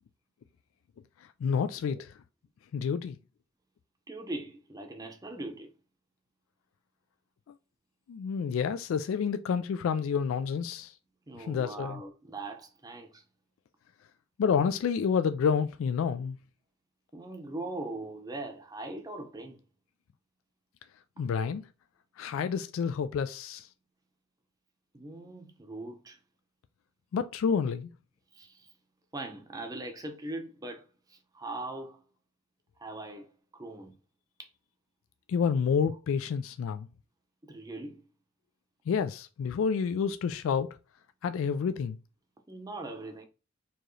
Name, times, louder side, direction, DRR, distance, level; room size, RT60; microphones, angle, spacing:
voice 1, 1.4-2.1 2.7-3.2 8.1-10.9 11.4-12.0 14.4-16.4 21.2-21.6 22.2-23.7 27.1-27.9 35.3-36.9 38.9-40.7 41.2-42.0, left 6 dB, 85° left, 0.3 m, -29 dB
voice 2, 4.1-5.7 11.3-13.2 17.1-19.6 21.2-21.3 24.9-26.2 28.3-28.7 29.1-32.1 32.8-34.0 34.4-34.5 37.4-38.1 42.5-43.2, right 2 dB, 20° right, 0.6 m, -41 dB
4.5 x 2.9 x 3.1 m
head